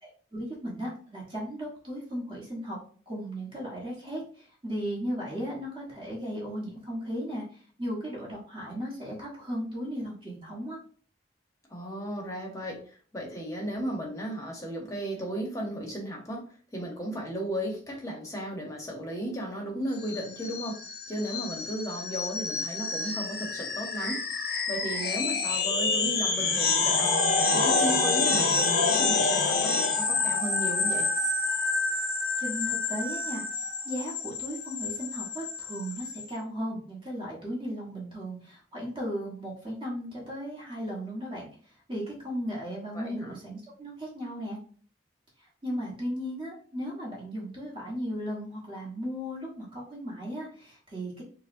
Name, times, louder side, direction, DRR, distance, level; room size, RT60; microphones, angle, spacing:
voice 1, 0.0-2.8 3.1-10.8 32.4-33.4 33.8-41.5 41.9-44.6 45.6-51.2, equal, 30° right, -4 dB, 1.3 m, -36 dB
voice 2, 11.7-16.4 16.7-20.8 21.1-24.2 24.7-27.2 27.5-31.1 42.9-43.4, right 1 dB, 20° left, -1 dB, 0.8 m, -35 dB
sound 1, 20.0-36.2, left 3 dB, 55° left, 0.6 m, -28 dB
4.7 x 2.1 x 2.6 m, 0.43 s
head